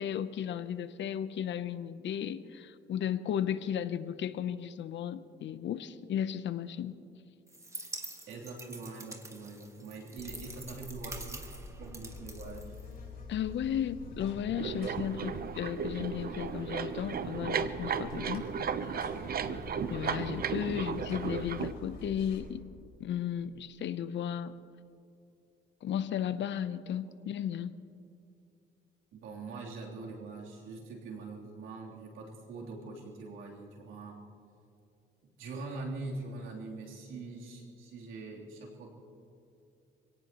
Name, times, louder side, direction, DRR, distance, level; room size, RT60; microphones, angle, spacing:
voice 1, 0.0-7.0 13.3-18.5 19.9-22.6 23.0-24.5 25.8-27.7, left 9 dB, 65° left, 13 dB, 0.8 m, -34 dB
sound 1, 7.5-13.2, right 2 dB, 15° right, 1.6 m, -46 dB
voice 2, 8.3-11.4 11.8-12.7 20.6-20.7 29.1-34.2 35.2-38.9, right 3 dB, 90° right, -3 dB, 3.3 m, -43 dB
Buzz, 10.2-22.4, left 2 dB, 50° left, 4.3 m, -46 dB
sound 2, 14.6-21.7, right 6 dB, 50° right, 0.8 m, -35 dB
26.0 x 17.5 x 3.0 m, 2.6 s
cardioid pair, 90°, 20 cm